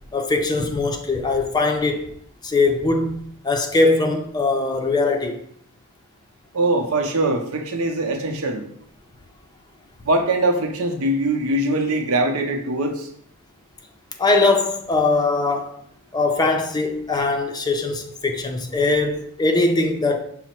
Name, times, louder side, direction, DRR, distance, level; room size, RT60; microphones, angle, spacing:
voice 1, 0.1-2.1 2.4-5.4 14.2-15.8 16.1-20.2, left 3 dB, 20° left, 0.4 m, -21 dB
voice 2, 6.5-8.6 10.0-13.1, right 2 dB, 85° right, 0.7 m, -22 dB
5.6 x 2.1 x 4.3 m
head